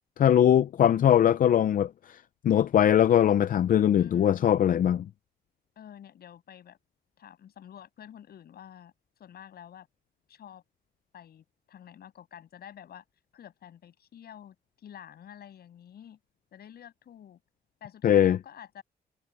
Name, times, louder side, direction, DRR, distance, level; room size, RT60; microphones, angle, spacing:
voice 1, 0.2-2.2 2.4-5.1 18.0-18.4, left 10 dB, 55° left, 0.5 m, -21 dB
voice 2, 3.9-4.5 5.8-6.8 7.2-8.9 9.2-9.9 10.3-10.6 11.1-13.0 13.3-16.2 16.5-17.4 17.8-18.8, left 9 dB, 70° left, 7.6 m, -48 dB
wide cardioid pair, 145°, 17 cm